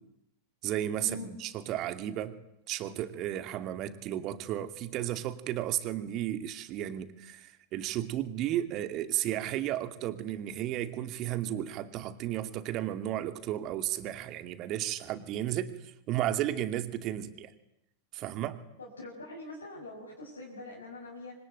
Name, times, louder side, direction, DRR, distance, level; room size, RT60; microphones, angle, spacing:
voice 1, 0.6-2.4 2.7-17.5 18.1-18.6, right 12 dB, 35° right, 9 dB, 2.5 m, -33 dB
voice 2, 18.8-21.3, left 2 dB, 75° left, -2 dB, 6.4 m, -43 dB
26.0 x 24.5 x 9.2 m, 0.82 s
figure-of-eight pair, 90°, 0 cm